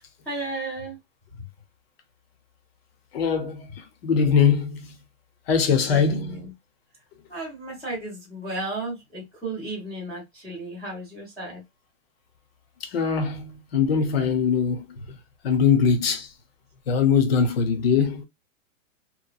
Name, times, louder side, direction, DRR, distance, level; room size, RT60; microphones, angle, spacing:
voice 1, 0.3-1.0 1.3-1.4 5.7-6.5 7.3-11.6, right 2 dB, 5° left, 0.8 m, -34 dB
voice 2, 3.1-3.7 4.0-4.9 5.5-6.5 12.9-14.9 15.4-16.3 16.9-18.3, left 6 dB, 45° left, 0.8 m, -21 dB
3.0 x 2.2 x 2.2 m
hypercardioid pair, 170°, 40 cm